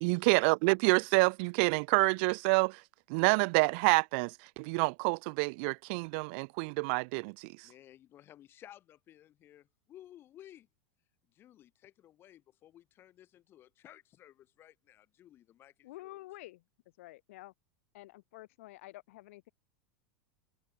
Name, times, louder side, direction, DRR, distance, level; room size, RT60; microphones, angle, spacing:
voice 1, 0.0-2.8 3.1-7.5, right 33 dB, 50° right, 0.5 m, -28 dB
voice 2, 7.6-10.7 11.3-16.2, left 12 dB, 30° left, 7.8 m, -56 dB
voice 3, 15.8-16.6 17.0-17.5 17.9-19.5, left 18 dB, 70° left, 3.8 m, -49 dB
supercardioid pair, 150°, 8 cm